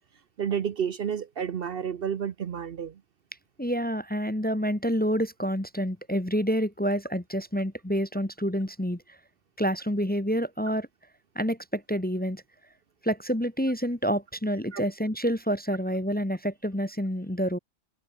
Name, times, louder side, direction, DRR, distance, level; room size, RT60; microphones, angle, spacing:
voice 1, 0.4-3.0 14.7-14.8, right 8 dB, 55° right, 0.9 m, -30 dB
voice 2, 3.6-9.0 9.6-10.9 11.3-12.4 13.0-17.6, equal, 10° left, 1.0 m, -28 dB
omnidirectional pair, 1.2 m